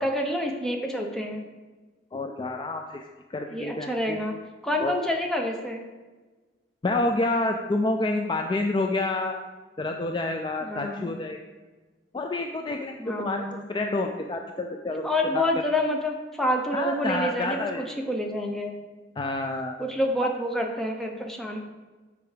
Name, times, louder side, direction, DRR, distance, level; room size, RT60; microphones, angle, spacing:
voice 1, 0.0-1.4 3.5-4.3 4.6-5.9 10.6-11.1 13.0-13.6 15.0-18.7 19.8-21.6, left 1 dB, ahead, 1 dB, 0.8 m, -28 dB
voice 2, 2.1-3.0 3.3-4.3 4.8-5.0 6.8-9.4 9.8-11.4 12.1-13.4 13.7-15.4 16.7-17.8 19.2-19.8, left 2 dB, 25° left, 4 dB, 0.3 m, -28 dB
6.8 x 4.7 x 5.0 m, 1.3 s
head